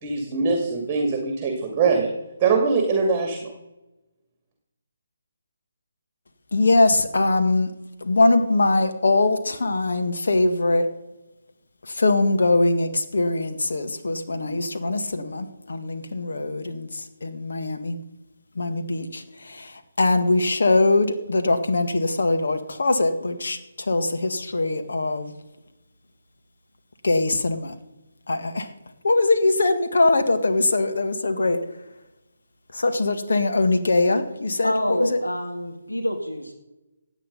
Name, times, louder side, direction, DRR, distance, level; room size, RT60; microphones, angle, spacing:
voice 1, 0.0-2.1 2.4-3.5, right 4 dB, 20° right, 2.3 m, -22 dB
voice 2, 6.5-7.7 8.0-10.9 11.8-18.0 18.6-25.3 27.0-27.8 28.3-28.7 29.0-31.6 32.7-35.2, left 2 dB, 60° left, 1.7 m, -22 dB
voice 3, 34.6-36.5, left 1 dB, 90° left, 2.0 m, -26 dB
16.0 x 9.2 x 5.4 m
figure-of-eight pair, 145°, 0 cm